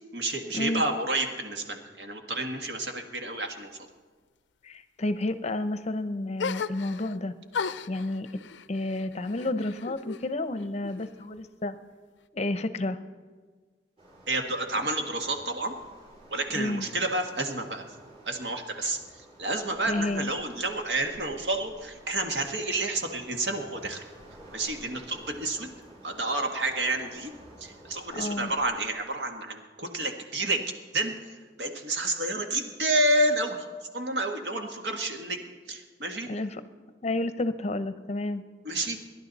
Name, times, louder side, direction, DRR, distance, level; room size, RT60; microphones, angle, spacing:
voice 1, 0.0-3.7 14.3-15.8 16.3-17.8 18.2-24.0 24.5-25.7 26.0-27.3 27.6-30.6 30.9-33.7 33.9-35.4 35.7-36.3 38.6-39.0, right 2 dB, 65° right, 4 dB, 1.7 m, -30 dB
voice 2, 4.6-7.3 7.9-8.3 8.7-11.8 12.3-13.0 16.5-16.8 19.9-20.3 28.1-28.5 36.3-36.6 37.0-38.4, left 2 dB, 40° left, 11 dB, 0.7 m, -30 dB
sound 1, 6.4-7.2 7.5-10.3 10.6-11.4, left 5 dB, 85° left, 0.5 m, -36 dB
Waves surf, 14.0-28.8, right 1 dB, 35° right, 5.6 m, -51 dB
28.5 x 11.5 x 4.1 m, 1.5 s
head